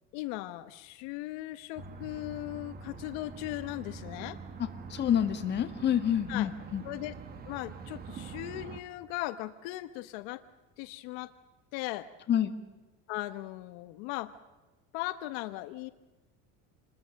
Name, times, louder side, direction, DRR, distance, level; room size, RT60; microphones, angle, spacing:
voice 1, 0.1-4.4 6.3-6.5 6.8-7.1 7.5-10.4 10.8-11.3 11.7-12.1 13.1-14.3 14.9-15.9, left 17 dB, 80° left, 11 dB, 1.2 m, -38 dB
sound 1, 1.8-8.8, right 4 dB, 30° right, 1.8 m, -45 dB
voice 2, 4.9-6.8 12.3-12.5, left 10 dB, 35° left, 7 dB, 1.8 m, -27 dB
27.5 x 21.0 x 6.5 m, 1.2 s
cardioid pair, 150°, 31 cm